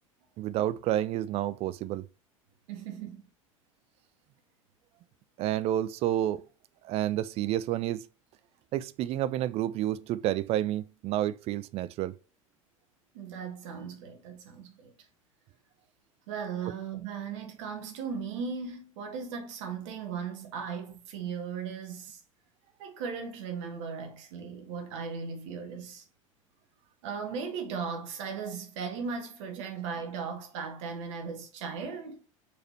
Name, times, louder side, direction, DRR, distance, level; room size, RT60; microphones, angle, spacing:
voice 1, 0.4-2.1 5.4-6.4 6.8-8.1 8.7-12.2, right 13 dB, 35° right, 0.4 m, -29 dB
voice 2, 2.7-3.2 13.1-14.9 16.3-22.2 22.8-26.0 27.0-32.2, right 6 dB, 60° right, 1.1 m, -37 dB
4.2 x 3.2 x 3.0 m
figure-of-eight pair, 80°, 17 cm